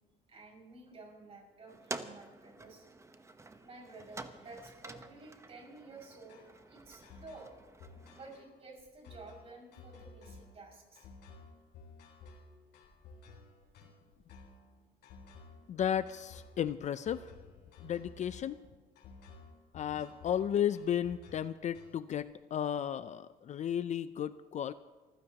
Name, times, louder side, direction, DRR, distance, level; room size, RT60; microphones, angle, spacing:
voice 1, 0.3-2.8 3.6-7.5 8.0-11.1, right 3 dB, 35° right, 0 dB, 6.0 m, -52 dB
sound 1, 1.7-8.4, right 3 dB, 15° right, 1.0 m, -48 dB
sound 2, 6.3-22.2, left 3 dB, 75° left, 3.9 m, -54 dB
voice 2, 15.7-17.3 17.8-18.6 19.7-24.7, left 9 dB, 45° left, 14 dB, 0.5 m, -34 dB
28.5 x 15.0 x 2.9 m, 1.3 s
cardioid pair, 110°, 17 cm